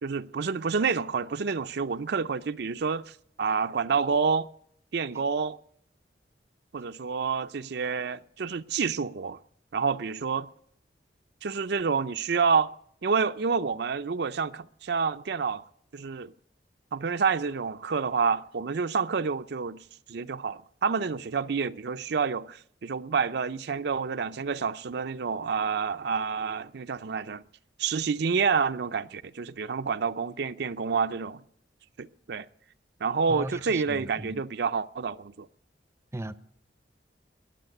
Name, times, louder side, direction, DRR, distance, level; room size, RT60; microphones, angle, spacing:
voice 1, 0.0-4.5 4.9-5.6 6.7-9.4 9.7-10.5 11.4-12.7 13.0-15.6 15.9-16.3 16.9-19.8 20.1-27.4 27.8-31.4 32.0-32.5 33.0-35.5, right 5 dB, 65° right, 0.5 m, -28 dB
voice 2, 33.3-34.4 36.1-36.4, right 1 dB, 15° right, 0.6 m, -37 dB
21.5 x 7.3 x 9.1 m
head